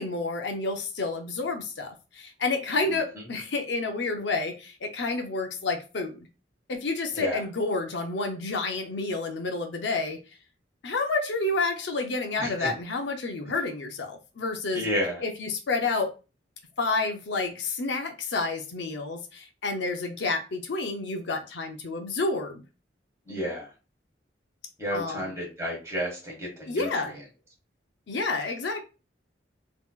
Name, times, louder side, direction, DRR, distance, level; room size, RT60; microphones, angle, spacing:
voice 1, 0.0-6.3 6.7-10.2 10.8-14.8 15.2-16.1 16.8-22.6 24.9-25.3 26.7-27.2 28.1-28.8, left 3 dB, 70° left, 5 dB, 0.6 m, -29 dB
voice 2, 12.4-12.7 14.7-15.2 23.3-23.7 24.8-27.0, equal, 15° right, -2 dB, 1.7 m, -31 dB
3.6 x 2.9 x 2.4 m, 0.31 s
head